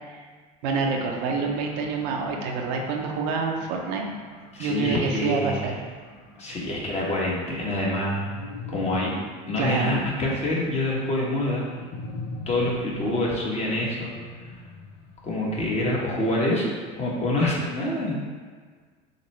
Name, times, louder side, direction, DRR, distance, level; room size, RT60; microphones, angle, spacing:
voice 1, 0.6-4.1 4.6-5.8 9.6-10.1, right 4 dB, 75° right, 1 dB, 0.7 m, -27 dB
sound 1, 0.9-16.4, left 3 dB, 75° left, 0.8 m, -43 dB
voice 2, 4.5-5.7 6.4-8.3 8.7-9.1 9.5-11.6 12.5-14.5 15.2-18.1, left 1 dB, 30° left, -4 dB, 1.3 m, -26 dB
6.5 x 2.2 x 3.2 m, 1.6 s
supercardioid pair, 100°, 21 cm